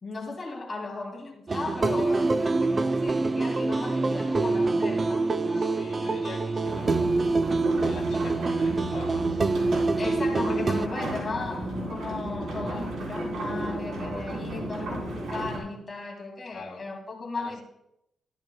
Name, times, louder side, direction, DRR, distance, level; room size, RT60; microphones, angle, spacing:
voice 1, 0.0-5.8 10.0-17.6, left 3 dB, 30° left, 2.4 m, -36 dB
sound 1, 1.5-10.9, right 3 dB, 30° right, 0.4 m, -25 dB
voice 2, 5.5-7.1 7.8-9.4 16.4-16.9 17.3-17.6, left 4 dB, 60° left, 2.3 m, -44 dB
sound 2, 6.6-15.6, right 1 dB, 80° right, 3.3 m, -34 dB
13.5 x 12.0 x 2.3 m
cardioid pair, 115°, 0 cm